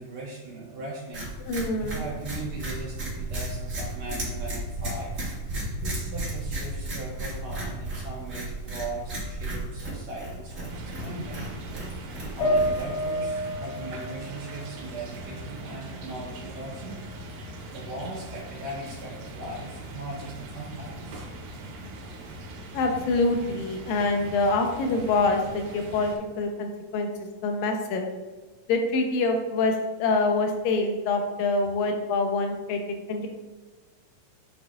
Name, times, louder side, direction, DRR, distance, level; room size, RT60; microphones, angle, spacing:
voice 1, 0.0-5.1 5.4-11.6 12.0-17.0 17.3-21.3, right 2 dB, 55° right, -5 dB, 2.5 m, -39 dB
sound 1, 1.1-13.1, right 1 dB, 35° right, 1.4 m, -34 dB
voice 2, 1.4-2.0 22.7-27.1 27.4-28.0 28.7-32.8 33.1-33.3, left 3 dB, 85° left, 3 dB, 2.4 m, -25 dB
sound 2, 10.7-26.2, right 1 dB, 75° right, 2.6 m, -41 dB
sound 3, 12.4-15.8 16.2-17.2, equal, 60° left, 2.0 m, -31 dB
8.7 x 5.4 x 2.4 m, 1.3 s
omnidirectional pair, 4.0 m